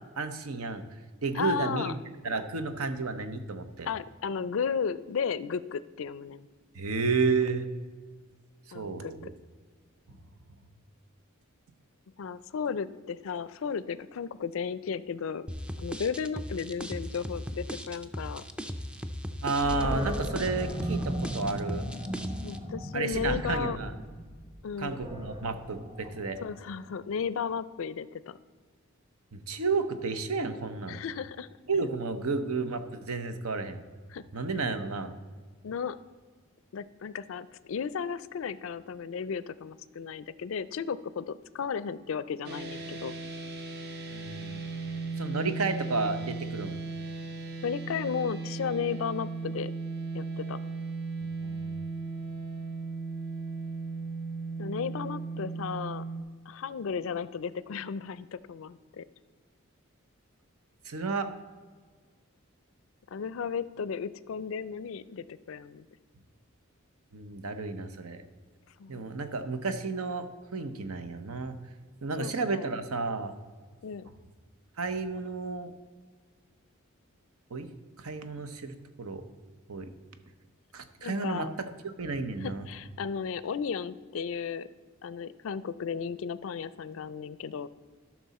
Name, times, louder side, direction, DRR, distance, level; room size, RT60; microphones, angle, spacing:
voice 1, 0.2-1.9 2.2-3.9 6.7-7.7 8.7-9.3 10.1-10.2 19.4-21.9 22.9-24.0 24.8-26.4 29.3-31.0 31.7-33.8 34.3-35.1 44.1-44.6 45.2-46.8 51.4-51.8 60.8-61.3 67.1-68.2 68.9-70.3 70.5-71.6 72.0-73.3 74.8-75.7 77.5-77.7 78.0-79.2 79.7-79.9 80.7-81.5 81.8-82.7, right 4 dB, 85° right, 9 dB, 0.8 m, -32 dB
voice 2, 1.3-1.9 3.8-6.5 8.7-9.1 12.2-15.5 15.8-18.4 22.4-23.8 24.6-25.0 26.4-28.4 30.9-31.5 34.1-34.2 35.6-36.0 36.7-43.1 47.6-49.7 50.1-50.6 54.6-56.0 56.5-59.1 63.1-65.9 68.8-69.1 72.2-72.7 73.8-74.1 81.0-81.5 82.4-84.7 85.0-87.7, left 6 dB, 65° left, 16 dB, 0.4 m, -34 dB
sound 1, 15.5-22.6, equal, 5° right, 0.4 m, -38 dB
Animal, 19.6-26.7, equal, 20° right, 1.0 m, -36 dB
sound 2, 42.4-56.2, right 4 dB, 50° right, 0.8 m, -36 dB
13.0 x 6.1 x 4.2 m, 1.5 s
head